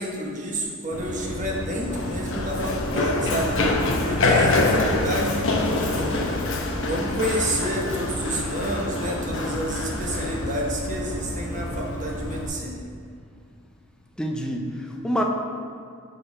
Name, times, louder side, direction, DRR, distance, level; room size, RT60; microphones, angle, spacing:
voice 1, 0.0-3.5 4.0-6.4 6.8-12.8, equal, 35° right, -2 dB, 1.3 m, -29 dB
Run, 0.9-12.5, left 2 dB, 60° left, 1.0 m, -26 dB
voice 2, 14.2-15.2, equal, 5° left, 1 dB, 0.6 m, -27 dB
6.3 x 5.4 x 5.7 m, 2.3 s
head